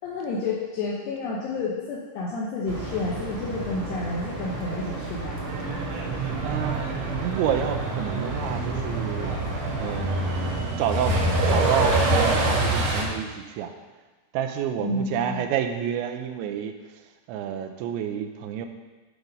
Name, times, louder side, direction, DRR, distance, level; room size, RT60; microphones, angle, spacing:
voice 1, 0.0-5.4 14.8-15.4, left 3 dB, 75° left, -4 dB, 2.9 m, -30 dB
sound 1, 2.7-10.6, right 2 dB, 50° right, 2.0 m, -33 dB
Truck, 5.5-13.0, right 2 dB, 65° right, 2.1 m, -26 dB
voice 2, 6.4-9.3 9.8-11.2 11.5-13.7 14.3-16.7 17.3-18.7, right 9 dB, 85° right, 6 dB, 3.0 m, -29 dB
8.3 x 6.0 x 5.2 m, 1.2 s
omnidirectional pair, 5.3 m